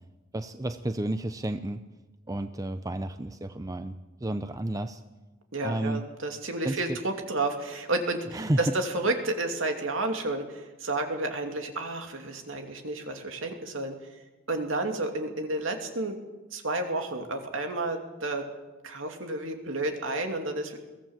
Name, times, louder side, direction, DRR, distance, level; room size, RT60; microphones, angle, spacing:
voice 1, 0.3-1.8 2.3-5.0 5.6-6.0 6.6-7.0 8.3-8.7, right 1 dB, 15° right, 9 dB, 0.6 m, -31 dB
voice 2, 5.5-14.2 14.5-16.2 16.5-18.5 18.8-20.8, right 2 dB, 70° right, 4 dB, 2.8 m, -31 dB
22.5 x 17.0 x 7.4 m, 1.2 s
head